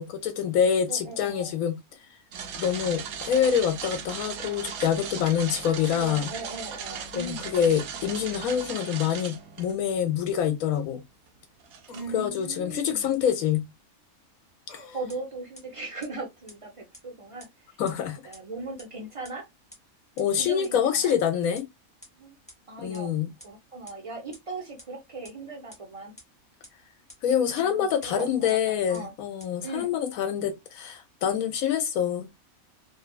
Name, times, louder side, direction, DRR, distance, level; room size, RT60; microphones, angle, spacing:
voice 1, 0.0-1.8 2.6-6.3 7.1-11.0 12.1-13.6 17.8-18.3 20.2-21.6 22.8-23.3 27.2-32.3, left 8 dB, 75° left, 1.1 m, -26 dB
voice 2, 0.9-1.5 5.9-7.5 11.9-13.1 14.9-17.8 18.2-19.5 20.3-21.1 22.2-22.4 22.7-23.1 23.4-26.2 27.6-29.1 29.6-29.9, right 3 dB, 50° right, 0.4 m, -38 dB
sound 1, 2.3-9.8 10.4-10.5 11.6-12.1, right 7 dB, 90° right, 1.1 m, -37 dB
sound 2, 9.5-9.6 11.9-12.3 14.7-15.2, left 3 dB, 55° left, 0.5 m, -48 dB
sound 3, 15.1-15.2 15.6-15.7 16.0-16.1 16.5-16.6 16.9-17.0 17.4-17.5 17.9-18.0 18.3-18.4 18.8-18.9 19.2-19.3 19.7-19.8 20.2-20.3 20.6-20.7 21.1-21.2 21.6-21.7 22.0-22.1 22.5-22.6 22.9-23.0 23.4-23.5 23.9-24.0 24.3-24.4 24.8-24.9 25.2-25.3 25.7-25.8 26.2-26.3 26.6-26.7 27.1-27.2 27.5-27.6 28.0-28.1 28.5-28.6 28.9-29.0 29.4-29.5, equal, 5° left, 0.6 m, -46 dB
3.1 x 2.2 x 2.2 m
omnidirectional pair, 1.5 m